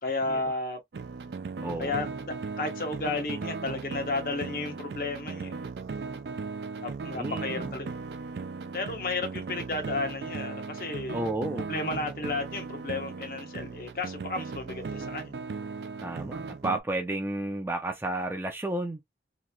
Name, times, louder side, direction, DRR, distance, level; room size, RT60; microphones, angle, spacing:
voice 1, 0.0-0.8 1.8-2.1 2.6-5.6 6.8-7.9 8.7-11.2 11.7-15.4, left 3 dB, 55° left, 0.8 m, -33 dB
sound 1, 0.9-16.8, right 4 dB, 75° right, 0.4 m, -37 dB
voice 2, 1.6-2.1 7.1-7.7 11.1-11.7 16.0-19.1, right 2 dB, 15° right, 0.4 m, -32 dB
3.0 x 2.5 x 2.2 m
head